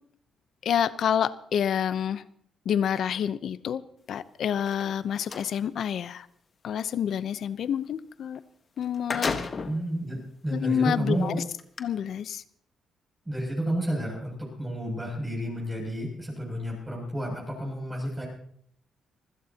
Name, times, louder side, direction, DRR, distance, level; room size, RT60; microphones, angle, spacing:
voice 1, 0.6-2.2 2.7-3.8 4.1-6.3 6.6-8.4 8.8-9.4 10.5-11.3 11.8-12.4, left 9 dB, 65° left, 14 dB, 0.8 m, -28 dB
sound 1, 4.6-5.5 8.4-8.5 8.8-9.9 10.5-10.6 11.6-11.8, left 4 dB, 40° left, 1.4 m, -32 dB
voice 2, 9.6-11.4 13.3-18.3, right 1 dB, 15° right, -2 dB, 7.2 m, -31 dB
25.5 x 16.0 x 2.9 m, 0.62 s
cardioid pair, 100°, 0 cm